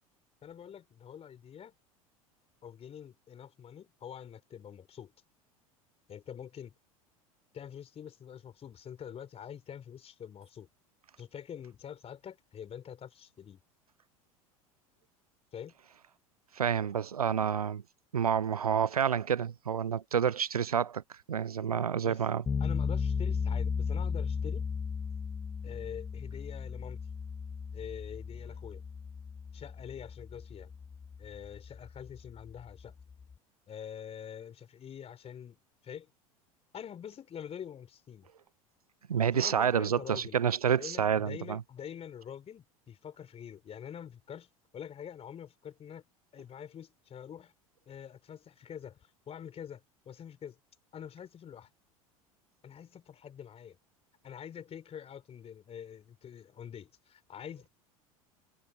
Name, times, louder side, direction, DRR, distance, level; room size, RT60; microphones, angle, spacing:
voice 1, 0.4-1.7 2.6-5.1 6.1-6.7 7.5-10.7 11.2-13.6 15.5-15.8 22.0-22.3 22.6-24.7 25.6-27.0 27.7-28.8 29.5-30.7 31.2-32.9 33.7-35.6 35.8-36.1 36.7-38.3 39.3-40.4 40.8-46.0 46.3-47.5 47.9-50.6 50.9-51.7 52.6-53.8 54.2-57.7, left 8 dB, 35° left, 4.2 m, -45 dB
voice 2, 16.6-17.8 18.1-21.0 21.3-22.4 39.1-41.6, right 8 dB, 90° right, 0.5 m, -29 dB
sound 1, 22.5-33.3, left 6 dB, 15° left, 0.4 m, -36 dB
figure-of-eight pair, 75°, 19 cm